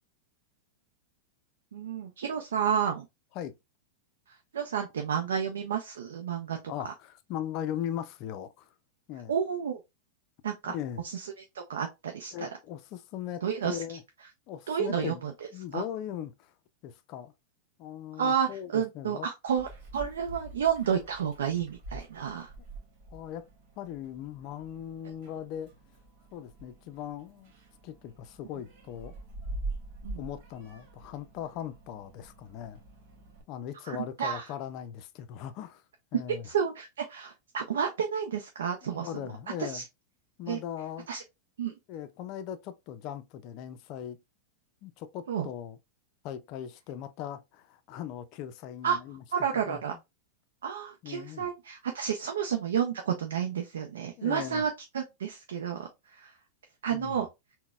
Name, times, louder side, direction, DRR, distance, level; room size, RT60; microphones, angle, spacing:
voice 1, 1.7-3.1 4.5-6.6 6.8-6.9 9.3-9.8 10.4-10.7 11.0-11.3 11.5-12.5 13.4-13.8 14.7-15.3 15.7-15.8 18.2-19.7 19.9-22.5 30.0-30.2 33.9-34.5 36.4-39.1 39.6-39.8 40.5-40.6 41.1-41.2 41.6-41.7 45.3-45.5 48.8-49.0 49.3-49.9 50.6-54.7 54.9-56.3 56.8-57.3, right 7 dB, 80° right, 0.4 m, -30 dB
voice 2, 6.7-8.7 9.1-9.3 10.7-11.0 12.3-14.0 14.5-15.2 15.5-16.5 16.8-17.3 17.8-19.3 23.1-23.5 23.8-25.7 26.3-27.5 27.8-29.1 30.2-32.8 33.5-35.8 36.1-36.5 38.8-39.8 40.4-41.1 41.9-44.2 44.8-45.8 46.2-49.2 49.7-50.0 51.0-51.5 54.2-54.7 56.9-57.2, left 10 dB, 50° left, 0.4 m, -39 dB
Meow, 19.5-33.4, right 2 dB, 55° right, 1.2 m, -45 dB
3.9 x 2.1 x 2.3 m
hypercardioid pair, 105°, 0 cm